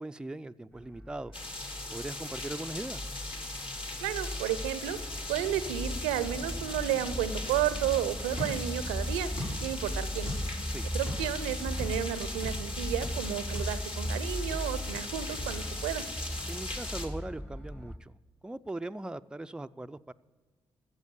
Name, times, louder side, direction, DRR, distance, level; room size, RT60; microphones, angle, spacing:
voice 1, 0.0-1.3 1.9-3.1 10.7-10.9 16.5-18.1 18.4-20.1, right 2 dB, 5° right, 10 dB, 0.4 m, -40 dB
sound 1, 0.7-18.0, equal, 15° left, 1.2 m, -38 dB
sound 2, 1.3-17.1, left 2 dB, 45° left, 2.5 m, -40 dB
voice 2, 4.0-5.0 5.3-9.3 9.6-10.3 10.9-16.0, right 11 dB, 80° right, 15 dB, 0.6 m, -32 dB
sound 3, 8.3-10.7 11.1-11.4 11.8-12.7 13.0-13.3 13.5-16.7, left 1 dB, 75° left, 4.9 m, -42 dB
14.5 x 7.3 x 6.9 m, 1.3 s
hypercardioid pair, 40°, 12 cm